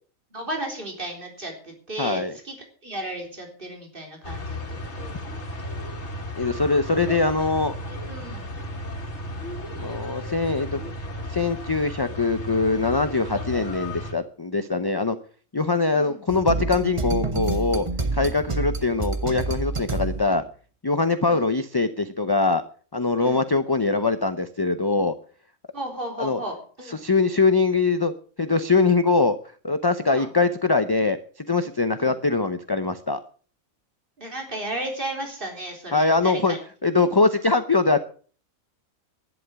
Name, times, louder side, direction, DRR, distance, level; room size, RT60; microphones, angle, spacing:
voice 1, 0.3-2.5 2.8-5.7 8.1-8.5 15.9-16.2 18.0-18.2 21.2-21.4 23.2-23.4 25.7-27.0 30.1-30.3 32.0-32.1 34.2-36.6, right 1 dB, 40° right, 2 dB, 4.1 m, -34 dB
voice 2, 2.0-2.3 6.3-7.7 9.8-10.8 11.3-15.2 15.5-17.9 18.1-20.4 20.8-22.6 22.9-25.1 26.2-26.4 27.0-28.1 28.4-29.4 29.6-31.2 31.5-33.2 35.9-36.6 36.8-38.0, left 3 dB, 25° left, 10 dB, 0.6 m, -22 dB
sound 1, 4.2-14.1, left 1 dB, 55° left, 2.5 m, -34 dB
sound 2, 16.3-20.5, right 3 dB, 25° right, 1.2 m, -28 dB
11.5 x 11.0 x 6.9 m, 0.43 s
omnidirectional pair, 1.4 m